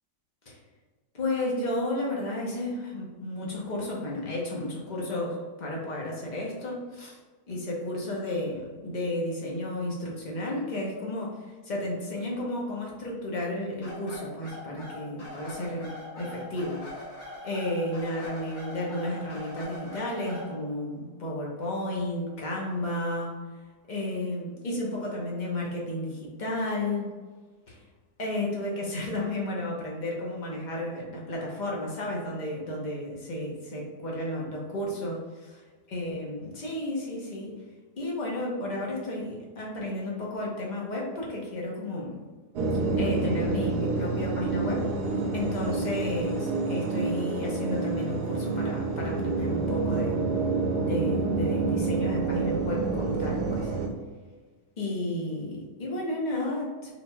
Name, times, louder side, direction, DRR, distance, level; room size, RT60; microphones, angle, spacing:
voice 1, 1.1-7.2 7.5-17.0 17.4-23.3 23.9-27.1 27.7-27.8 28.2-35.5 35.9-37.5 38.0-42.2 43.0-44.9 45.3-50.2 50.8-53.8 54.8-56.9, left 1 dB, 40° left, -3 dB, 0.7 m, -32 dB
sound 1, 13.8-20.5, left 1 dB, 55° left, 1.6 m, -42 dB
sound 2, 42.6-53.9, right 3 dB, 80° right, 1.2 m, -28 dB
4.0 x 4.0 x 2.2 m, 1.4 s
omnidirectional pair, 1.7 m